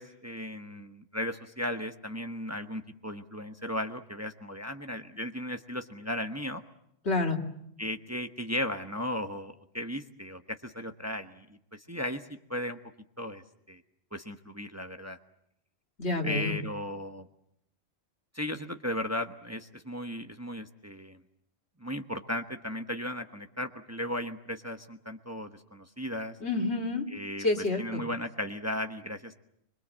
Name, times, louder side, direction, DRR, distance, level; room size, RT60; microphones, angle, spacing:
voice 1, 0.0-6.6 7.8-11.4 11.7-12.2 12.5-12.8 13.2-13.4 13.7-13.8 14.1-15.2 16.2-17.3 18.3-21.2 21.8-26.4 27.1-27.5 27.8-29.3, left 1 dB, 15° right, 6 dB, 1.1 m, -36 dB
voice 2, 7.0-7.4 16.0-16.6 26.4-27.1 27.4-28.0, left 2 dB, 75° left, 1 dB, 2.9 m, -28 dB
25.5 x 23.5 x 7.5 m, 0.75 s
omnidirectional pair, 1.1 m